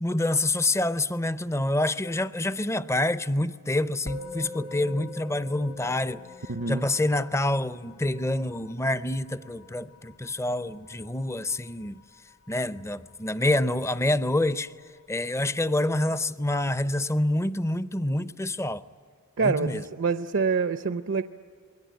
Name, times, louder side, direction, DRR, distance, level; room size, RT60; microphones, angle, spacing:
voice 1, 0.0-6.2 6.7-12.0 12.5-14.7 15.1-18.8 19.4-19.8, left 1 dB, 15° left, 0.6 m, -27 dB
Musical instrument, 4.1-13.6, left 3 dB, 80° left, 1.5 m, -45 dB
voice 2, 6.5-6.8 19.4-21.2, right 5 dB, 60° right, 0.7 m, -26 dB
28.0 x 21.5 x 9.3 m
head